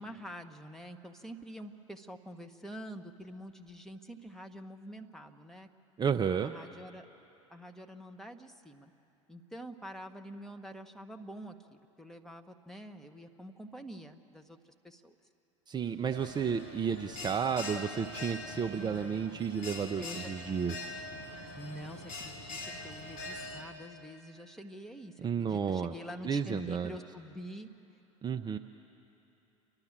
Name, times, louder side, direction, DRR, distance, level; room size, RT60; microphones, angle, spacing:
voice 1, 0.0-5.7 6.4-7.0 7.5-8.9 9.3-15.1 20.0-20.3 21.5-27.7, equal, 5° left, 4 dB, 1.3 m, -46 dB
voice 2, 6.0-6.5 15.7-20.9 25.2-25.9 26.2-26.9 28.2-28.6, right 7 dB, 25° right, 6 dB, 0.7 m, -32 dB
Bell, 16.1-23.6, left 2 dB, 60° left, 2.4 m, -43 dB
29.5 x 12.0 x 7.4 m, 3.0 s
hypercardioid pair, 75°, 17 cm